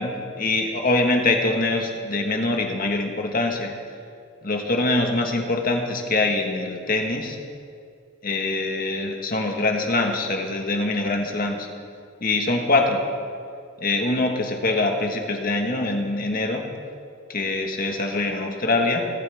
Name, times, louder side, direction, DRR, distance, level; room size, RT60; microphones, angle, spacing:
voice 1, 0.0-3.7 4.4-7.4 8.2-11.7 12.2-13.0 13.8-16.6 17.3-19.0, left 2 dB, 45° left, 2 dB, 1.5 m, -24 dB
22.5 x 9.0 x 3.5 m, 2.2 s
head